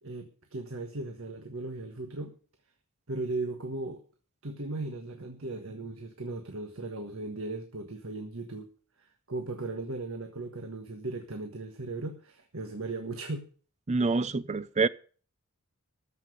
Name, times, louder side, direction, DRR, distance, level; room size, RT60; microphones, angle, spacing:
voice 1, 0.0-2.3 3.1-4.0 4.4-8.7 9.0-13.5, right 2 dB, 65° right, 1.4 m, -37 dB
voice 2, 13.9-14.9, right 3 dB, 30° right, 0.5 m, -26 dB
14.0 x 5.8 x 8.1 m
head